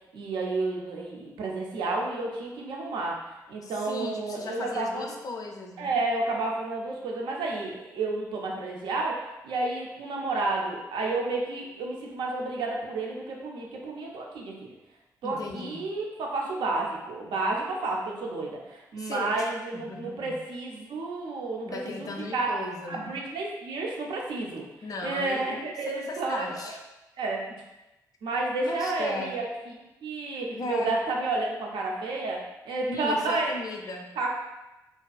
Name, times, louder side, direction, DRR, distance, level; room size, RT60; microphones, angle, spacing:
voice 1, 0.1-3.2 3.5-5.1 5.8-9.2 9.4-14.5 15.2-22.6 22.9-24.6 25.0-26.5 27.2-27.4 28.2-29.5 30.0-33.5 34.2-34.3, right 3 dB, 75° right, -1 dB, 0.5 m, -31 dB
voice 2, 3.6-6.0 15.2-15.9 19.0-20.4 21.6-23.2 24.8-26.8 27.5-27.6 28.6-29.4 30.5-31.0 32.9-34.1, left 3 dB, 50° left, 3 dB, 0.4 m, -37 dB
2.5 x 2.3 x 2.3 m, 1.0 s
supercardioid pair, 45°, 8 cm